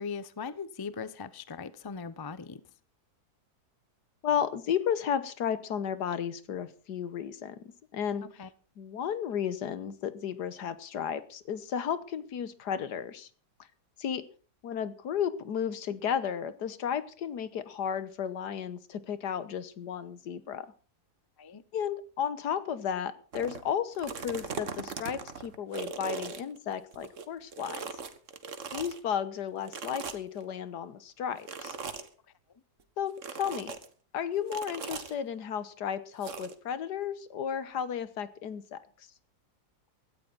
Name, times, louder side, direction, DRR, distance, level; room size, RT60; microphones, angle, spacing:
voice 1, 0.0-2.6 8.4-8.5 21.4-21.6, left 5 dB, 30° left, 0.4 m, -39 dB
voice 2, 4.2-8.3 8.8-13.3 14.0-14.3 14.6-20.7 21.7-27.9 28.7-31.7 33.0-33.1 33.4-33.7 34.1-38.8, left 8 dB, 90° left, 1.7 m, -33 dB
sound 1, 23.3-23.6 23.9-27.3 27.5-29.0 29.7-30.4 31.4-32.1 33.2-33.9 34.5-35.1 36.2-36.5, right 5 dB, 50° right, 1.6 m, -39 dB
16.5 x 13.5 x 4.0 m
omnidirectional pair, 1.7 m